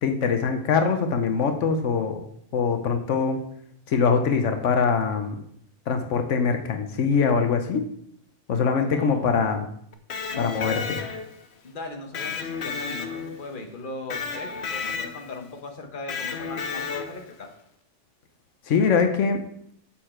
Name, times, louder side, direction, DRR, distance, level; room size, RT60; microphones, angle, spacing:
voice 1, 0.0-2.2 2.5-3.4 3.9-5.4 5.9-7.8 8.5-9.6 10.4-11.0 18.7-19.4, left 5 dB, 85° left, 6 dB, 1.2 m, -23 dB
voice 2, 8.6-9.5 10.3-10.8 11.6-17.5, left 3 dB, 45° left, 3 dB, 1.3 m, -38 dB
Electric guitar, 9.9-11.5 12.1-13.5 14.1-15.4 16.1-17.3, left 5 dB, 65° left, 1.0 m, -32 dB
7.4 x 6.5 x 4.4 m, 0.69 s
omnidirectional pair, 1.2 m